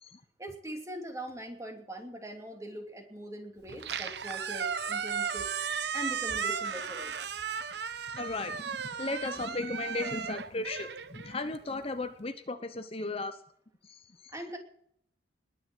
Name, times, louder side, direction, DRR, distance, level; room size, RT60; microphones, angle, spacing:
voice 1, 0.4-7.1 14.3-14.6, right 1 dB, 15° right, 4 dB, 2.8 m, -42 dB
Squeak, 3.7-11.9, right 6 dB, 65° right, 0.9 m, -35 dB
voice 2, 8.1-8.7 9.0-13.4 13.8-14.3, left 2 dB, 35° left, 9 dB, 0.9 m, -36 dB
20.5 x 7.1 x 7.9 m, 0.68 s
head